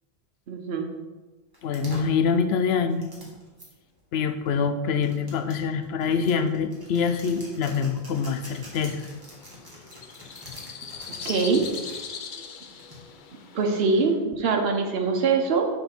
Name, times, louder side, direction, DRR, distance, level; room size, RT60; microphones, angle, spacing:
voice 1, 0.5-0.9 11.2-11.6 13.5-15.7, right 4 dB, 75° right, 2 dB, 1.0 m, -23 dB
sound 1, 1.5-3.7 4.5-12.0 12.8-13.2, left 1 dB, 20° right, 1.9 m, -45 dB
voice 2, 1.6-3.1 4.1-9.1, left 6 dB, 80° left, 10 dB, 0.8 m, -25 dB
sound 2, 9.0-14.2, left 6 dB, 55° left, 0.7 m, -40 dB
7.0 x 3.8 x 5.8 m, 1.2 s
omnidirectional pair, 1.0 m